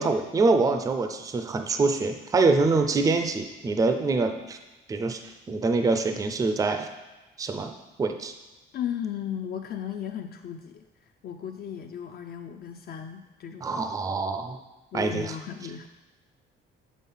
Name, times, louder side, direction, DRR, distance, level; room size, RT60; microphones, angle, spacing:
voice 1, 0.0-4.6 4.9-6.9 7.4-8.3 13.6-14.6 14.9-15.3, right 3 dB, 15° right, 6 dB, 0.4 m, -25 dB
voice 2, 8.7-13.8 14.9-15.9, left 9 dB, 50° left, 5 dB, 0.4 m, -36 dB
7.3 x 4.1 x 5.4 m, 1.1 s
cardioid pair, 165°, 21 cm